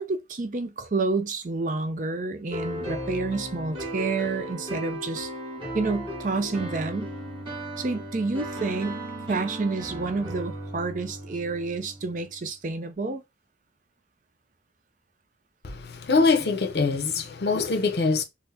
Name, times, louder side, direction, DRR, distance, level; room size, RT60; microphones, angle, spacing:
voice 1, 0.0-5.3 5.7-7.1 7.8-13.2, right 3 dB, 45° right, 0.5 m, -29 dB
sound 1, 2.5-12.3, right 1 dB, 30° right, 1.2 m, -36 dB
voice 2, 15.6-18.2, left 4 dB, 65° left, 0.6 m, -23 dB
3.8 x 2.1 x 2.7 m
head